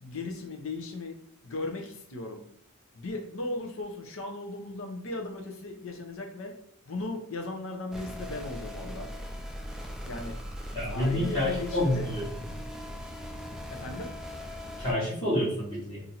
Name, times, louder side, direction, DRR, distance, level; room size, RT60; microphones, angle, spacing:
voice 1, 0.0-1.2 1.4-2.4 2.9-6.5 6.9-9.1 10.0-10.4 10.9-12.1 13.7-14.1, left 2 dB, 65° left, 4 dB, 0.7 m, -37 dB
sound 1, 7.9-14.9, equal, ahead, 0.3 m, -39 dB
voice 2, 10.7-12.3 14.8-16.0, left 1 dB, 25° left, -9 dB, 1.1 m, -28 dB
2.7 x 2.6 x 4.3 m, 0.66 s
head